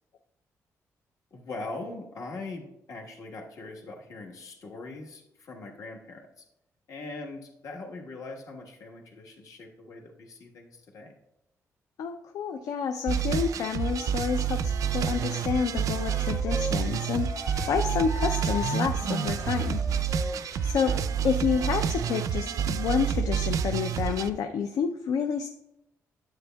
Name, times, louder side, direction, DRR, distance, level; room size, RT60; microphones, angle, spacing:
voice 1, 1.3-6.4 6.9-11.1 20.8-21.0, left 3 dB, 70° left, 0 dB, 1.3 m, -41 dB
voice 2, 12.0-19.8 20.6-20.9 21.2-25.5, left 7 dB, 85° left, 6 dB, 0.4 m, -29 dB
sound 1, 13.1-24.3, right 8 dB, 70° right, 0.4 m, -28 dB
Wind instrument woodwind instrument, 15.7-21.0, left 3 dB, 35° left, 1.3 m, -38 dB
9.6 x 7.8 x 2.2 m, 0.85 s
cardioid pair, 125°, 6 cm